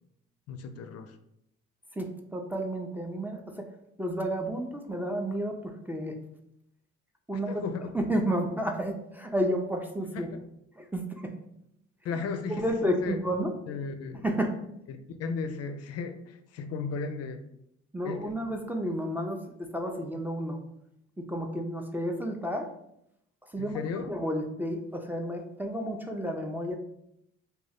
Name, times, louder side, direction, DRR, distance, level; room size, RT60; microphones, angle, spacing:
voice 1, 0.5-1.2 7.5-7.9 10.1-10.4 12.0-13.2 13.7-14.2 14.9-17.4 18.0-18.4 23.6-24.1, left 5 dB, 60° left, 8 dB, 0.4 m, -35 dB
voice 2, 2.0-3.7 4.0-6.2 7.3-7.6 7.9-10.3 10.8-11.3 12.1-12.2 12.5-13.5 14.2-14.6 17.9-20.6 21.2-22.7 23.4-26.8, equal, 5° right, 2 dB, 0.4 m, -31 dB
2.5 x 2.3 x 3.3 m, 0.77 s
supercardioid pair, 65°, 29 cm